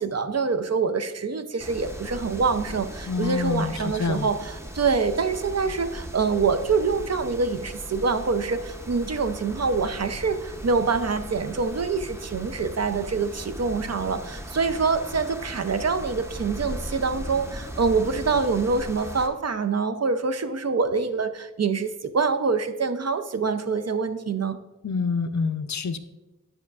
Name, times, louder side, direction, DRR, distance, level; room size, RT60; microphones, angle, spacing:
voice 1, 0.0-24.6, right 4 dB, 50° right, 8 dB, 0.5 m, -25 dB
sound 1, 1.6-19.3, equal, 10° right, 0.6 m, -38 dB
voice 2, 3.1-4.3 24.8-26.0, left 4 dB, 60° left, 10 dB, 0.5 m, -27 dB
9.6 x 5.6 x 2.3 m, 1.0 s
wide cardioid pair, 55°, 33 cm